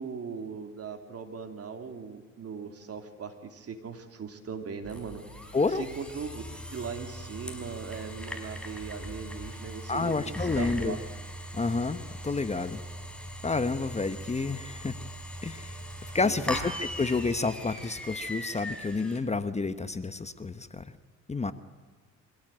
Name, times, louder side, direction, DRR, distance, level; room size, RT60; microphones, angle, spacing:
voice 1, 0.0-5.2 5.7-6.4 6.7-11.0 16.2-16.6, right 6 dB, 50° right, 6 dB, 3.1 m, -39 dB
sound 1, 4.8-19.2, equal, 5° left, 4.6 m, -40 dB
voice 2, 5.5-5.9 9.9-11.0 11.5-12.8 13.4-14.9 15.4-15.8 16.1-20.8 21.3-21.5, left 3 dB, 20° left, 12 dB, 1.1 m, -29 dB
24.0 x 17.0 x 8.9 m, 1.4 s
cardioid pair, 90°, 30 cm